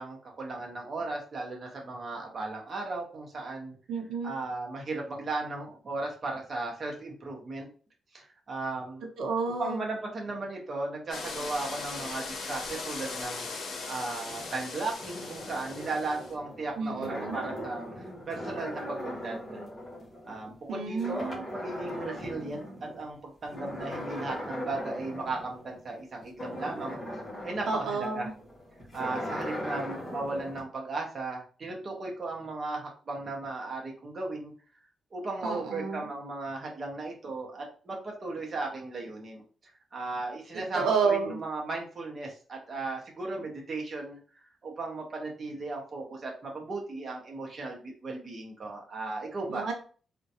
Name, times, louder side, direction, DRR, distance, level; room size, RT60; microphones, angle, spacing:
voice 1, 0.0-3.7 4.2-7.7 8.1-9.0 9.6-13.5 13.9-19.4 20.3-27.0 27.4-28.3 28.9-34.5 35.1-39.4 39.9-44.2 44.6-49.7, right 3 dB, 30° right, -1 dB, 0.7 m, -36 dB
voice 2, 3.9-4.3 9.2-9.8 16.8-17.3 20.7-21.4 27.7-28.3 35.4-36.1 40.5-41.4 49.5-49.7, right 5 dB, 75° right, 2 dB, 0.7 m, -30 dB
sound 1, 11.1-16.3, left 4 dB, 65° left, 0.7 m, -39 dB
sound 2, 14.3-20.7 21.0-23.0 23.5-30.6, left 1 dB, 20° left, 1.3 m, -39 dB
3.7 x 2.2 x 2.8 m, 0.40 s
wide cardioid pair, 175°, 0 cm